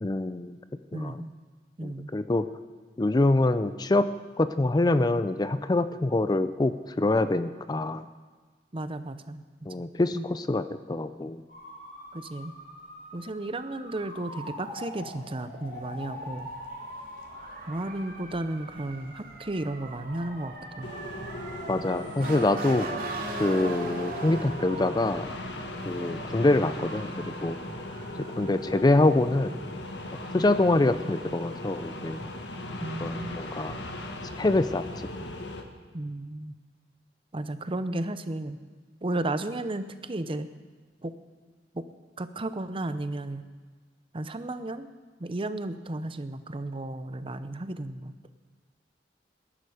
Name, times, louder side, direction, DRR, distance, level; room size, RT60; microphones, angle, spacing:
voice 1, 0.0-0.6 0.9-1.2 1.8-2.5 3.0-4.1 4.4-8.1 9.7-11.4 21.7-22.9 23.4-25.3 25.9-27.6 28.2-29.6 30.3-32.2 33.0-33.8 34.4-34.9, left 2 dB, 25° left, 12 dB, 0.5 m, -25 dB
voice 2, 0.9-1.3 1.8-2.1 8.7-9.4 10.1-10.3 12.1-12.5 13.1-16.5 17.7-20.9 32.8-33.4 35.9-36.6 37.3-38.6 39.0-40.5 41.0-41.1 42.2-43.4 44.1-44.9 45.2-48.1, right 2 dB, 30° right, 11 dB, 0.7 m, -33 dB
sound 1, 11.5-23.4, left 1 dB, 55° left, 5.3 m, -45 dB
Motor vehicle (road) / Siren, 15.7-29.2, right 2 dB, 55° right, 2.5 m, -41 dB
sound 2, 20.8-35.6, left 1 dB, 70° left, 1.5 m, -38 dB
20.5 x 11.5 x 4.9 m, 1.5 s
head